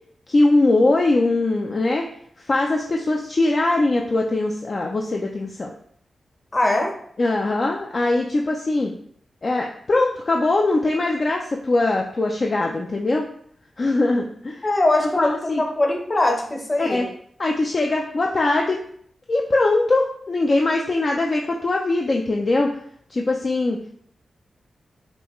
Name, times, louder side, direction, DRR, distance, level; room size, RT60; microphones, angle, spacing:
voice 1, 0.3-2.1 2.5-5.7 7.2-8.9 9.4-13.3 13.8-14.6 15.0-15.6 16.8-17.1 17.4-18.8 19.3-22.7 23.1-24.0, left 2 dB, 45° left, 1 dB, 0.4 m, -21 dB
voice 2, 6.5-6.9 14.6-17.1, left 2 dB, 30° left, 1 dB, 0.9 m, -21 dB
5.2 x 2.3 x 3.0 m, 0.64 s
cardioid pair, 80°, 0 cm